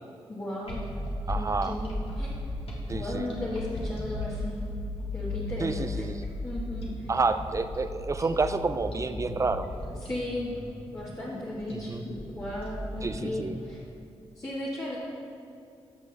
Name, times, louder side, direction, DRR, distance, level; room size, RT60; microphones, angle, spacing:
voice 1, 0.3-0.8 1.3-2.3 2.9-4.5 5.1-6.0 6.4-7.1 10.0-10.6 10.9-11.9 12.3-13.8 14.4-15.0, left 1 dB, 30° left, -8 dB, 1.8 m, -35 dB
sound 1, 0.6-13.7, left 2 dB, 65° left, 1.8 m, -36 dB
voice 2, 1.3-1.8 2.9-3.3 5.6-6.3 7.1-9.7 11.7-12.0 13.0-13.6, right 3 dB, 30° right, 10 dB, 0.5 m, -29 dB
12.0 x 6.1 x 3.5 m, 2.7 s
cardioid pair, 60°, 10 cm